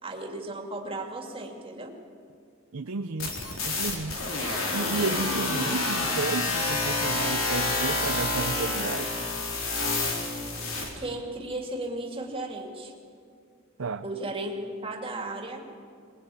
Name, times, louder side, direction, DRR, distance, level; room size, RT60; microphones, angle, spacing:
voice 1, 0.0-1.9 11.0-12.9 14.0-15.7, right 2 dB, 25° right, 2 dB, 2.5 m, -35 dB
voice 2, 2.7-3.3 3.6-4.2 4.7-9.3 13.8-14.0, right 4 dB, 85° right, 7 dB, 0.7 m, -32 dB
sound 1, 3.2-10.9, left 2 dB, 75° left, 3.7 m, -28 dB
22.5 x 21.0 x 8.5 m, 2.3 s
head